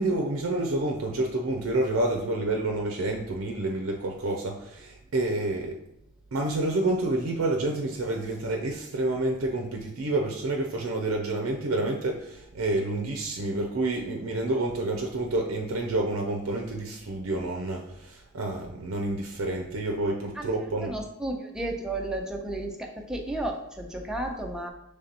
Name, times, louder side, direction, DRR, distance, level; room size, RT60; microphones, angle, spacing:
voice 1, 0.0-5.8 6.3-21.0, right 2 dB, 80° right, 2 dB, 0.5 m, -28 dB
voice 2, 20.8-24.7, right 1 dB, 5° right, 1 dB, 0.5 m, -33 dB
5.2 x 3.3 x 2.8 m, 0.80 s
head